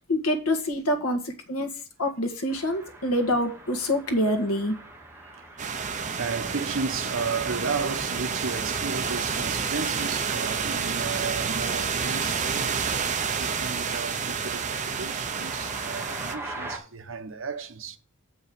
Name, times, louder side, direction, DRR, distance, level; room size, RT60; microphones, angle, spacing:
voice 1, 0.0-1.7 2.0-4.8, left 1 dB, 75° left, 1.8 m, -26 dB
sound 1, 2.5-16.8, right 2 dB, 10° right, 1.4 m, -44 dB
sound 2, 5.6-16.3, right 6 dB, 35° right, 0.8 m, -29 dB
voice 2, 6.2-12.9 13.4-18.0, right 5 dB, 60° right, 1.1 m, -34 dB
7.0 x 5.5 x 6.7 m
head